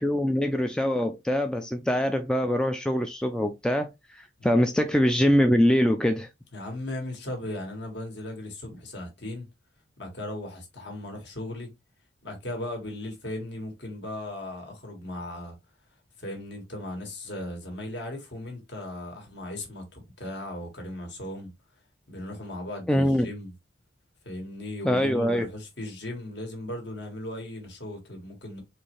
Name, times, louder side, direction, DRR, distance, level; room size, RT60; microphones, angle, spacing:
voice 1, 0.0-6.3 22.9-23.3 24.8-25.5, equal, 5° left, 0.3 m, -24 dB
voice 2, 6.5-9.5 10.0-11.7 12.2-15.5 16.2-21.5 22.1-23.5 24.2-28.6, left 1 dB, 55° left, 1.6 m, -37 dB
4.3 x 3.1 x 3.1 m
head